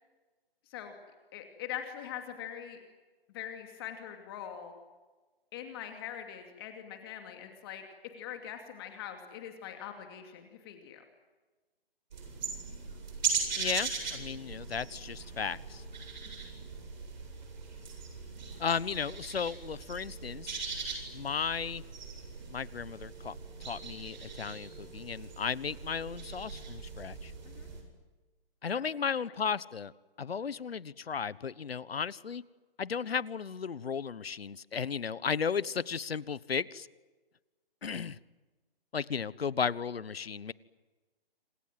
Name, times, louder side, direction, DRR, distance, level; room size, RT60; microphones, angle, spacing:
voice 1, 1.3-2.8 3.3-4.7 5.5-7.8 8.1-11.0 27.4-27.7, left 10 dB, 25° left, 5 dB, 2.6 m, -42 dB
sound 1, 12.1-27.8, right 5 dB, 50° right, 7.8 m, -40 dB
voice 2, 13.6-15.8 18.6-20.6 21.1-21.8 22.5-23.3 23.6-27.3 28.6-29.9 30.2-32.4 32.8-36.9 37.8-38.2 38.9-40.5, left 6 dB, 85° left, 20 dB, 1.2 m, -35 dB
27.5 x 26.5 x 7.7 m, 1.3 s
hypercardioid pair, 160°, 30 cm